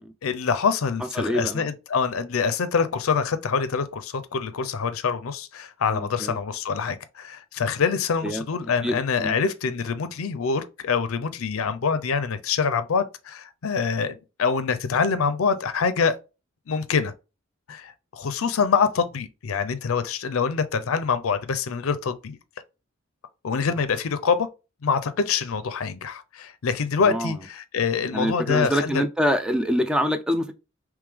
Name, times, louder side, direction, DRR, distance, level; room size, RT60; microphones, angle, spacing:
voice 1, 0.2-16.2 16.7-17.1 17.7-22.4 23.4-24.5 24.8-29.0, left 5 dB, 75° left, 0.5 m, -25 dB
voice 2, 1.2-1.7 5.9-6.4 8.2-8.4 8.8-9.3 27.1-27.3 28.1-30.5, equal, 5° right, 0.4 m, -25 dB
3.5 x 3.1 x 3.3 m
head